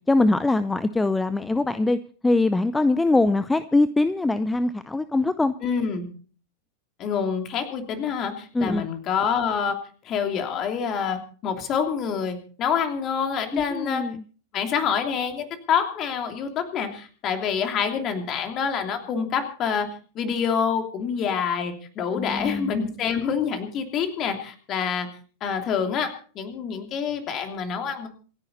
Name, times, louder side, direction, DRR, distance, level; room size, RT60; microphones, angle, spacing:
voice 1, 0.1-5.5 8.5-8.9 13.5-14.2 22.2-22.7, left 2 dB, 10° left, 15 dB, 0.6 m, -22 dB
voice 2, 5.6-6.1 7.0-9.8 10.0-14.0 14.5-19.9 20.1-25.1 25.4-28.1, left 7 dB, 35° left, 6 dB, 3.0 m, -27 dB
27.0 x 10.5 x 4.1 m, 0.41 s
figure-of-eight pair, 90°, 0 cm